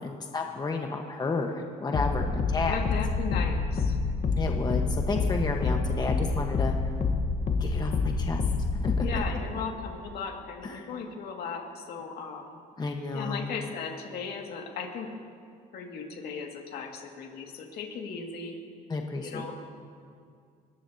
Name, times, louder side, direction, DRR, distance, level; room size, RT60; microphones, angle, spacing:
voice 1, 0.0-2.8 4.4-6.7 7.6-8.4 8.7-9.3 10.6-10.9 12.8-13.5 18.9-19.5, left 3 dB, 25° left, 2 dB, 1.3 m, -32 dB
sound 1, 1.9-9.3, left 4 dB, 45° left, 1.3 m, -27 dB
voice 2, 2.6-3.9 9.0-12.5 13.1-15.1 15.7-18.6 19.2-19.5, left 5 dB, 65° left, 1 dB, 2.2 m, -37 dB
21.5 x 18.0 x 2.9 m, 2.3 s
cardioid pair, 110°, 17 cm